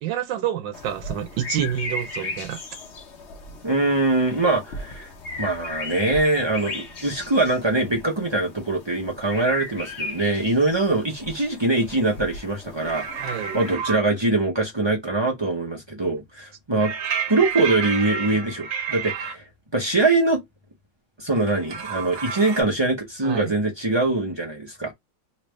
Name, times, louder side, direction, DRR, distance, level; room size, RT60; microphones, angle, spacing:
voice 1, 0.0-2.6 13.2-13.6 23.2-23.5, right 10 dB, 80° right, 1.4 m, -28 dB
sound 1, 0.7-13.8, left 2 dB, 45° left, 1.1 m, -37 dB
voice 2, 3.6-5.1 5.4-16.9 17.3-19.4 19.7-20.4 21.2-24.9, right 2 dB, 35° right, 0.4 m, -23 dB
sound 2, 12.8-14.0 16.8-19.3 21.3-22.6, right 7 dB, 55° right, 1.1 m, -30 dB
3.3 x 2.9 x 3.2 m
omnidirectional pair, 2.0 m